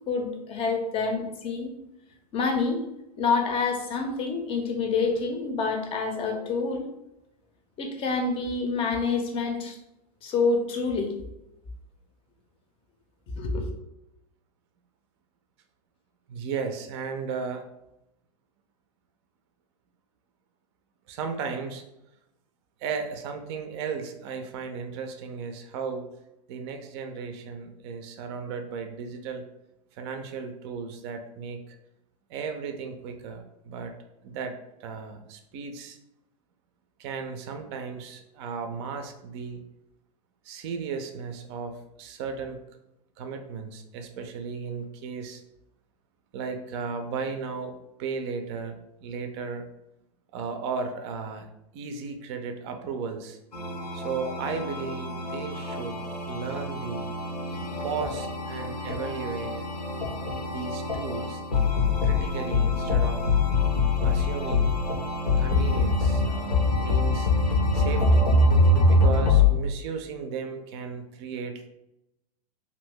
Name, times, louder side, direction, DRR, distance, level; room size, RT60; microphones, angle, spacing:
voice 1, 0.1-1.7 2.3-2.8 3.2-6.9 7.8-9.8 10.2-11.2 13.3-13.7, left 4 dB, 25° left, 4 dB, 0.6 m, -27 dB
voice 2, 16.3-17.6 21.1-21.8 22.8-26.1 26.5-29.4 29.9-31.8 32.3-33.9 34.2-34.5 34.8-36.0 37.0-39.6 40.4-42.6 43.2-45.4 46.3-49.6 50.3-51.5 51.7-53.4 53.9-56.0 56.3-57.1 57.8-59.5 60.5-61.4 62.0-63.2 64.0-64.7 65.4-67.3 67.7-68.3 68.9-71.7, right 5 dB, 45° right, 6 dB, 0.5 m, -35 dB
sound 1, 53.5-69.5, left 3 dB, 80° left, 0.8 m, -24 dB
2.6 x 2.5 x 3.5 m, 0.86 s
figure-of-eight pair, 95°, 20 cm